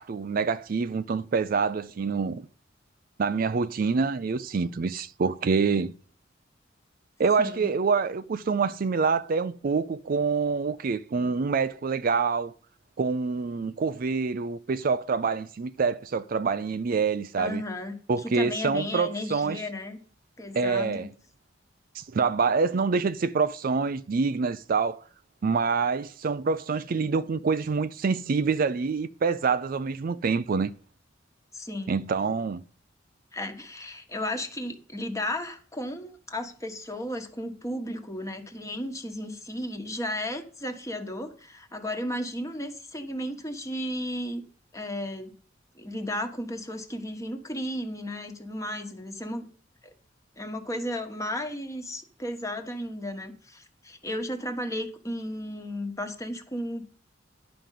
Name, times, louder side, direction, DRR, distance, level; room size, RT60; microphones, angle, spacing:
voice 1, 0.0-2.5 3.2-5.9 7.2-12.5 13.0-17.6 18.1-19.6 20.5-21.1 21.9-25.0 25.4-30.7 31.9-32.6, right 5 dB, 45° right, 0.4 m, -26 dB
voice 2, 7.4-7.7 17.4-20.0 20.4-21.0 31.5-31.9 33.3-44.4 44.7-45.3 45.8-49.5 49.8-49.9 50.4-56.8, left 1 dB, 15° left, 1.3 m, -34 dB
11.0 x 5.2 x 7.5 m
head